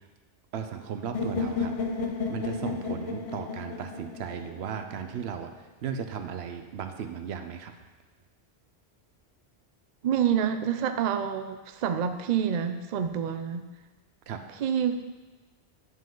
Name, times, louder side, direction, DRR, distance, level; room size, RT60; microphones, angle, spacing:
voice 1, 0.5-1.7 2.3-5.5 5.8-7.7 14.3-14.4, right 7 dB, 85° right, 7 dB, 0.9 m, -35 dB
sound 1, 1.1-5.1, left 4 dB, 40° left, 0.6 m, -32 dB
voice 2, 10.0-13.7 14.5-15.0, right 8 dB, 55° right, 8 dB, 0.5 m, -27 dB
9.4 x 5.2 x 3.8 m, 1.2 s
omnidirectional pair, 1.1 m